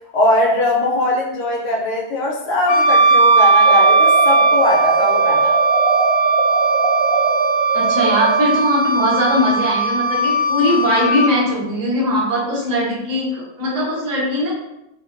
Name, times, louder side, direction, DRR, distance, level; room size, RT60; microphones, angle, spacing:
voice 1, 0.1-5.6, left 1 dB, 85° left, -1 dB, 1.2 m, -20 dB
Wind instrument woodwind instrument, 2.7-11.3, right 3 dB, 60° left, 0.6 m, -17 dB
sound 1, 3.6-8.5, right 4 dB, 70° right, 0.9 m, -22 dB
voice 2, 7.7-14.5, equal, 25° right, -6 dB, 0.4 m, -20 dB
2.5 x 2.2 x 2.4 m, 0.87 s
omnidirectional pair, 1.7 m